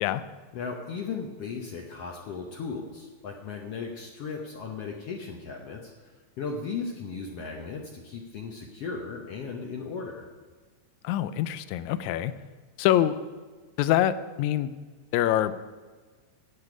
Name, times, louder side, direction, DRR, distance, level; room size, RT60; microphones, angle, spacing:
voice 1, 0.5-6.1 6.4-10.3, left 5 dB, 65° left, 0 dB, 1.7 m, -36 dB
voice 2, 11.0-12.3 12.8-13.2 13.8-14.7 15.1-15.6, left 12 dB, 80° left, 14 dB, 1.9 m, -25 dB
14.5 x 9.0 x 5.0 m, 1.4 s
omnidirectional pair, 3.6 m